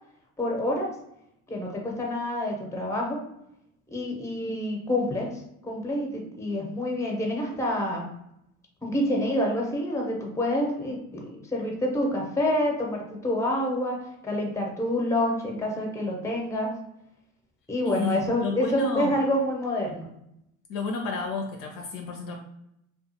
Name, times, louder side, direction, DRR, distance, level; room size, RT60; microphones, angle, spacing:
voice 1, 0.4-0.9 1.5-3.2 3.9-5.3 5.6-8.1 8.8-16.7 17.7-20.1, left 1 dB, 5° left, 0 dB, 0.8 m, -27 dB
voice 2, 17.8-19.2 20.7-22.4, left 3 dB, 50° left, 2 dB, 0.6 m, -31 dB
2.4 x 2.3 x 2.8 m, 0.79 s
hypercardioid pair, 80°, 43 cm